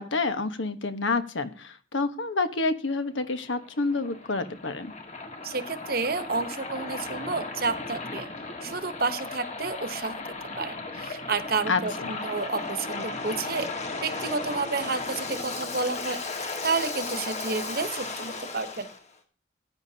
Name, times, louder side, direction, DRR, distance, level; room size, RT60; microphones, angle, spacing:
voice 1, 0.0-4.9 11.7-12.1, left 3 dB, 80° left, 10 dB, 1.2 m, -28 dB
Waves surf, 3.2-19.0, left 3 dB, 35° left, 1.6 m, -36 dB
voice 2, 5.4-8.3 8.6-10.2 10.6-13.7 14.0-18.9, right 4 dB, 50° right, 11 dB, 1.0 m, -30 dB
15.5 x 9.5 x 2.8 m, 0.40 s
head